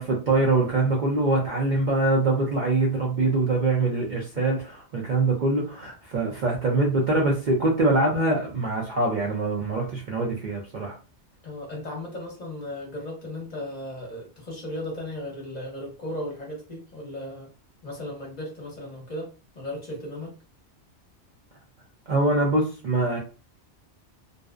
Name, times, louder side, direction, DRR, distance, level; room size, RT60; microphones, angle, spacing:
voice 1, 0.0-11.0 22.1-23.2, right 2 dB, 55° right, 0.5 m, -24 dB
voice 2, 11.4-17.5 17.8-19.3 19.5-20.3, left 1 dB, 40° left, 0.8 m, -36 dB
2.6 x 2.0 x 2.3 m
omnidirectional pair, 1.2 m